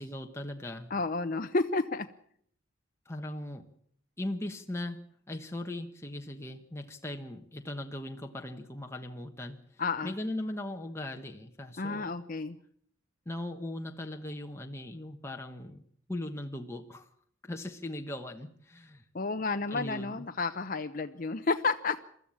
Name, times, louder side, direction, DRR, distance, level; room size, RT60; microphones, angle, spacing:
voice 1, 0.0-0.9 3.0-3.7 4.2-5.0 5.3-12.2 13.2-15.8 16.1-17.1 17.4-19.0 19.7-20.2, left 1 dB, 15° left, 3 dB, 1.1 m, -39 dB
voice 2, 0.9-2.1 9.8-10.1 11.8-12.6 19.1-22.0, left 3 dB, 40° left, 7 dB, 0.8 m, -31 dB
23.5 x 13.5 x 8.6 m, 0.64 s
head